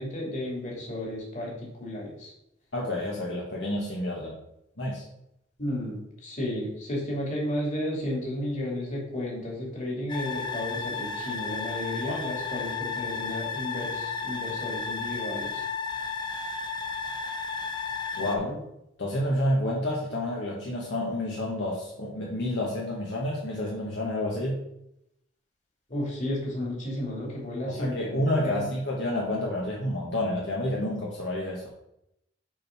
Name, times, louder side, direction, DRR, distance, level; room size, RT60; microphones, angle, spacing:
voice 1, 0.0-2.3 5.6-15.6 18.2-18.6 25.9-28.6, left 1 dB, 40° left, -3 dB, 2.6 m, -33 dB
voice 2, 2.7-4.4 4.8-5.0 12.0-12.2 18.2-18.4 19.0-24.6 27.7-31.7, left 1 dB, 65° left, -3 dB, 1.4 m, -29 dB
sound 1, 10.1-18.4, left 5 dB, 25° left, 0.7 m, -33 dB
6.3 x 4.5 x 5.9 m, 0.82 s
head